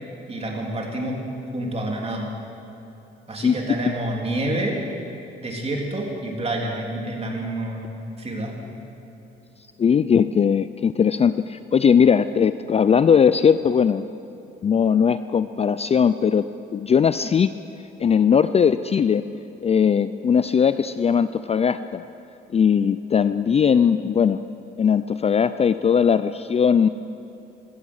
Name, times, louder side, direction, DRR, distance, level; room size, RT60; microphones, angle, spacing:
voice 1, 0.3-1.2 1.5-2.3 3.3-4.8 5.4-7.9 8.2-8.8, right 1 dB, 30° right, 0 dB, 3.3 m, -28 dB
voice 2, 3.4-3.8 9.8-14.1 14.6-16.5 16.7-17.5 18.0-19.2 19.6-22.0 22.5-24.4 24.8-26.9, left 7 dB, 30° left, 13 dB, 0.4 m, -19 dB
16.0 x 13.5 x 6.5 m, 2.9 s
cardioid pair, 90°, 20 cm